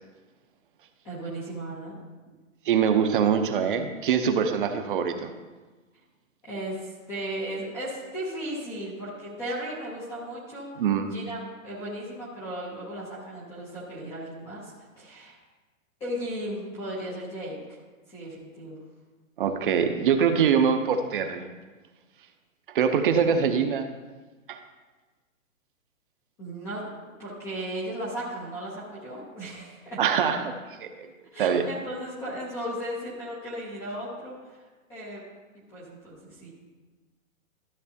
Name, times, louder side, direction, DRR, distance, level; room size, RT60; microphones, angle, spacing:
voice 1, 1.0-2.0 6.4-10.7 11.0-15.4 16.0-17.8 18.1-18.8 26.4-30.0 31.3-35.2 35.7-36.5, right 1 dB, 5° left, -8 dB, 0.4 m, -36 dB
voice 2, 2.7-5.3 10.8-11.1 19.4-21.5 22.7-23.9 24.5-24.6 30.0-30.5 30.8-31.1 31.4-31.6, right 7 dB, 40° right, 6 dB, 0.6 m, -23 dB
13.0 x 6.6 x 2.7 m, 1.3 s
hypercardioid pair, 155°, 41 cm